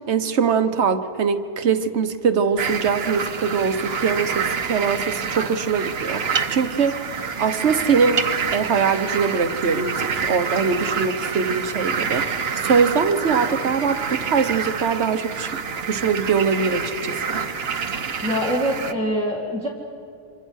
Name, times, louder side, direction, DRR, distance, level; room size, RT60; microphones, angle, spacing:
voice 1, 0.1-8.2 8.5-15.5 15.8-17.4, right 5 dB, 90° right, 9 dB, 1.3 m, -22 dB
sound 1, 2.6-18.9, right 6 dB, 65° right, 1.2 m, -27 dB
voice 2, 18.2-19.7, equal, 5° left, -2 dB, 2.0 m, -24 dB
29.5 x 26.0 x 6.4 m, 2.5 s
omnidirectional pair, 1.1 m